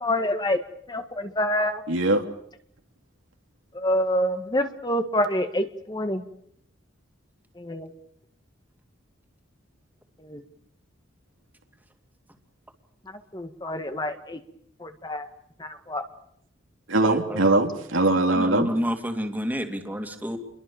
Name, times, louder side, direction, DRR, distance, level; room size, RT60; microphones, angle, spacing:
voice 1, 0.0-0.6 0.9-1.8 3.7-6.2 7.6-7.9 10.2-10.4 13.3-14.4 14.8-15.3 15.6-16.0, left 1 dB, 20° left, 7 dB, 1.7 m, -27 dB
voice 2, 1.9-2.2 16.9-18.7, right 2 dB, 90° right, 4 dB, 3.3 m, -21 dB
voice 3, 17.1-17.4 18.3-20.4, equal, 10° right, 5 dB, 2.8 m, -29 dB
29.5 x 22.5 x 7.1 m, 0.70 s
head